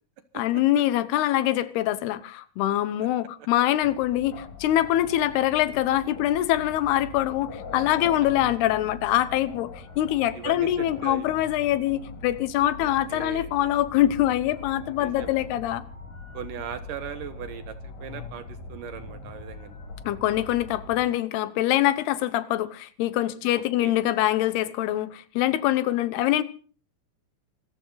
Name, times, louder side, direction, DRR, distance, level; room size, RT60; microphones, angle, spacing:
voice 1, 0.3-15.8 20.0-26.4, left 13 dB, 85° left, 15 dB, 3.0 m, -24 dB
sound 1, 3.8-21.0, left 4 dB, 50° left, 3.2 m, -42 dB
voice 2, 10.3-11.3 12.8-13.5 15.0-15.4 16.3-19.7 23.5-23.9, right 9 dB, 65° right, 10 dB, 2.6 m, -39 dB
25.5 x 14.5 x 4.0 m, 0.41 s
omnidirectional pair, 4.6 m